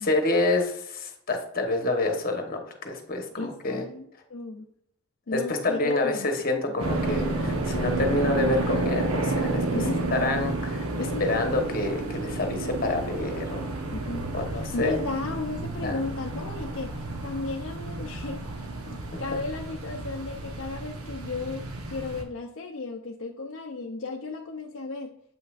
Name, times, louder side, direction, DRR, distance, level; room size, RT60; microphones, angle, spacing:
voice 1, 0.0-3.8 5.3-9.8 10.1-13.7 14.3-14.9 15.8-16.0 19.3-19.4, left 2 dB, 40° left, 4 dB, 1.1 m, -28 dB
voice 2, 3.4-4.7 5.3-6.3 6.7-6.9 9.7-10.1 11.0-11.3 13.9-25.1, left 3 dB, 60° left, 1 dB, 0.5 m, -35 dB
sound 1, 6.8-22.2, right 2 dB, 85° right, 1.0 m, -31 dB
7.8 x 5.6 x 2.4 m, 0.74 s
head